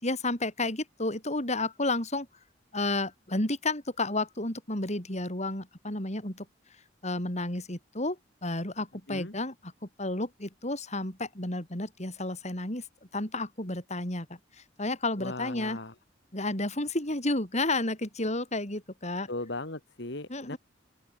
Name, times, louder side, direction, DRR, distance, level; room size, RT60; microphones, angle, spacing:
voice 1, 0.0-2.3 2.7-6.5 7.0-9.7 10.0-12.8 13.1-14.3 14.8-15.8 16.3-19.3 20.3-20.6, left 2 dB, 35° left, 6.8 m, -31 dB
voice 2, 15.2-15.9 19.3-20.6, left 2 dB, 65° left, 2.8 m, -37 dB
open air
head